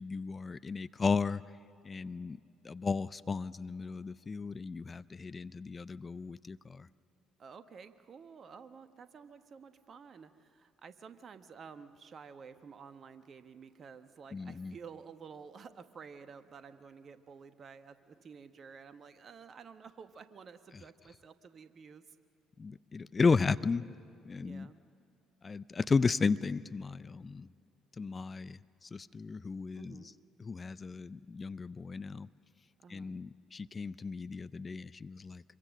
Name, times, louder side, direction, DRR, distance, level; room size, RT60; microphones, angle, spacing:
voice 1, 0.0-1.4 1.8-2.4 2.6-6.9 14.3-14.7 22.6-23.9 24.2-24.7 25.4-27.5 28.0-30.0 30.4-32.3 32.9-35.4, left 4 dB, 30° left, 17 dB, 0.5 m, -34 dB
voice 2, 7.4-22.2 24.4-24.8 29.7-30.2 32.8-33.2, right 6 dB, 45° right, 11 dB, 1.2 m, -51 dB
25.0 x 22.5 x 6.5 m, 2.4 s
figure-of-eight pair, 50°, 0 cm